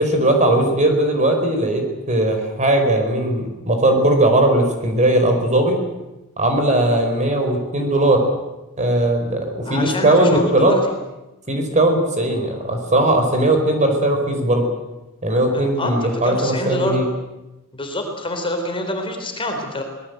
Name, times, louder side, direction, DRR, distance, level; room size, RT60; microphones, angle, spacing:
voice 1, 0.0-5.8 6.4-8.2 8.8-10.8 11.5-14.7 15.2-17.1, right 1 dB, 35° right, 4 dB, 4.6 m, -18 dB
voice 2, 9.7-10.8 15.5-17.0 17.7-19.8, left 1 dB, 25° left, 4 dB, 4.0 m, -26 dB
25.0 x 19.5 x 8.1 m, 1.0 s
head